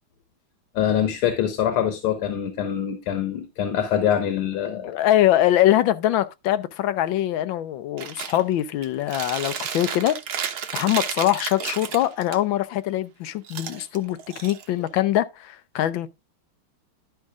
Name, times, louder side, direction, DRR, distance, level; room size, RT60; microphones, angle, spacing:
voice 1, 0.8-4.9, left 9 dB, 90° left, 2.0 m, -24 dB
voice 2, 4.8-10.2 10.7-16.1, left 13 dB, 75° left, 1.3 m, -23 dB
Chewing mastication, 8.0-8.4 8.8-12.4 13.4-15.0, right 8 dB, 60° right, 1.3 m, -32 dB
11.5 x 5.7 x 3.5 m
omnidirectional pair, 2.3 m